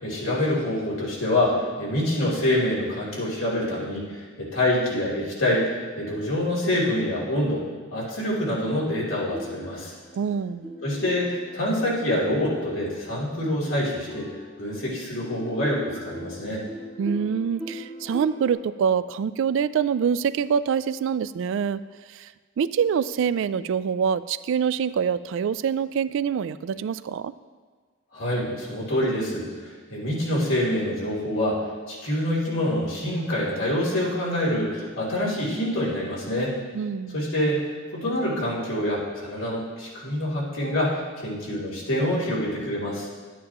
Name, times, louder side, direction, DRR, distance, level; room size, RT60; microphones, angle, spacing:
voice 1, 0.0-7.6 7.9-9.9 10.8-14.3 14.6-16.6 28.1-36.5 37.1-43.1, left 1 dB, 85° left, -6 dB, 2.9 m, -26 dB
sound 1, 9.3-13.2 13.6-18.5, equal, 5° left, 1.7 m, -40 dB
voice 2, 10.1-10.7 17.0-21.8 22.1-22.3 22.6-27.3 36.7-37.2, right 7 dB, 65° right, 15 dB, 0.3 m, -25 dB
11.5 x 9.3 x 2.9 m, 1.5 s
head